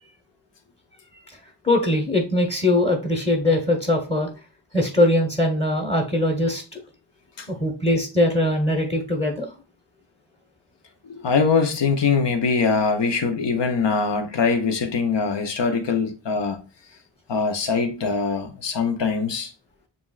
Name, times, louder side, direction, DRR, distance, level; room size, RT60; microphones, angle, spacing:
voice 1, 1.6-4.3 4.7-6.8 7.5-9.5, left 1 dB, 15° left, 1.1 m, -21 dB
voice 2, 11.0-16.6 17.3-19.5, left 5 dB, 75° left, 0.9 m, -22 dB
6.9 x 2.6 x 2.4 m
cardioid pair, 40°, 43 cm